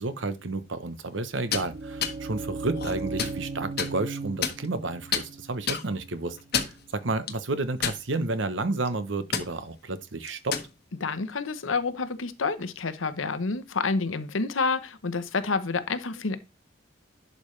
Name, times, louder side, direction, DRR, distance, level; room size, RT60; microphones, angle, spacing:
voice 1, 0.0-10.6, right 2 dB, 70° right, 1.0 m, -31 dB
sound 1, 1.3-7.1, right 3 dB, 35° right, 0.7 m, -37 dB
sound 2, 1.4-1.7 2.0-2.2 2.7-3.4 3.8-3.9 4.4-4.8 5.1-5.2 5.7-5.8 6.4-6.8 7.3-7.4 7.8-8.3 8.7-8.9 9.3-9.5 10.3-10.7, left 7 dB, 55° left, 1.1 m, -28 dB
voice 2, 11.0-16.4, left 4 dB, 90° left, 0.9 m, -28 dB
11.0 x 5.3 x 3.2 m
head